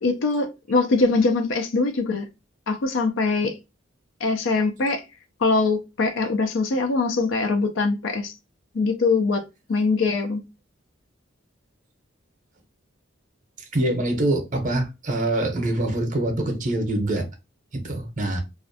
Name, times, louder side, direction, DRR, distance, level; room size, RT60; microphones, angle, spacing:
voice 1, 0.0-2.3 2.7-3.6 4.2-5.0 5.4-8.4 8.7-9.4 9.7-10.4, left 3 dB, 65° left, 0.4 m, -22 dB
voice 2, 13.7-17.3 17.7-18.4, right 1 dB, 40° right, 0.6 m, -24 dB
2.4 x 2.1 x 2.6 m
head